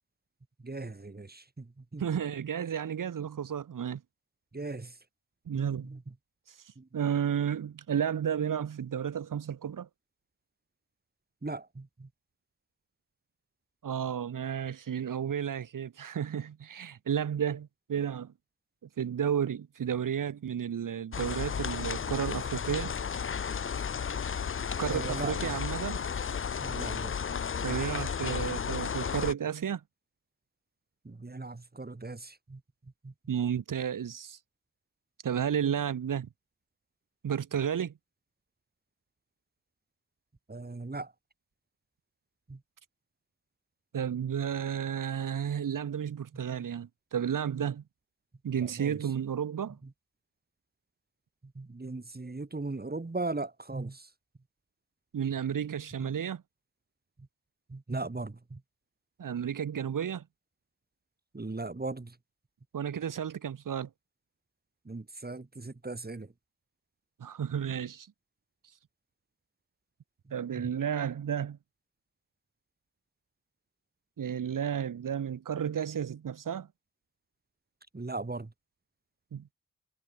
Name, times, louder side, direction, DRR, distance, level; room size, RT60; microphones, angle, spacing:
voice 1, 0.6-2.0 4.5-4.9 5.5-6.0 6.8-6.9 11.4-12.1 24.8-25.6 26.6-27.2 28.2-28.3 31.0-32.6 33.0-33.1 40.5-41.1 42.5-42.6 48.6-49.0 51.5-54.1 56.0-56.1 57.7-58.6 61.3-62.1 64.8-66.3 70.6-70.7 77.9-78.5, right 3 dB, 30° right, 6.8 m, -38 dB
voice 2, 2.0-4.0 5.5-5.9 6.9-9.9 13.8-18.3 19.0-23.0 24.8-26.0 27.6-29.8 33.3-34.4 35.2-36.3 37.2-37.9 43.9-47.8 48.4-49.8 55.1-56.4 59.2-60.3 62.7-63.9 67.2-68.1 70.3-71.6 74.2-76.7 79.3-79.4, right 8 dB, 85° right, 4.2 m, -32 dB
sound 1, 21.1-29.3, left 7 dB, 40° left, 0.7 m, -33 dB
cardioid pair, 65°, 31 cm